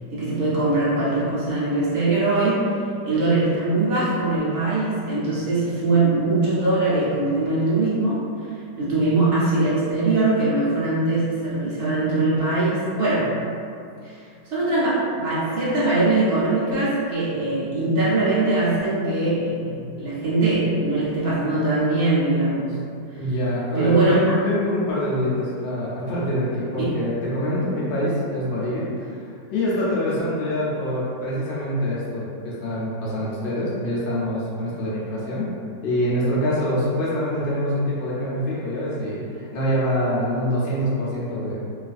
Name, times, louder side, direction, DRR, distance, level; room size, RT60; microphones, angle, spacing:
voice 1, 0.1-2.8 3.0-8.3 8.8-13.3 14.0-14.1 14.5-22.7 23.8-24.2 26.8-26.9, right 2 dB, 70° right, -9 dB, 0.5 m, -21 dB
voice 2, 23.2-29.1 29.5-35.5 35.8-41.6, equal, 90° left, -7 dB, 1.4 m, -25 dB
3.2 x 2.4 x 2.4 m, 2.4 s
omnidirectional pair, 1.9 m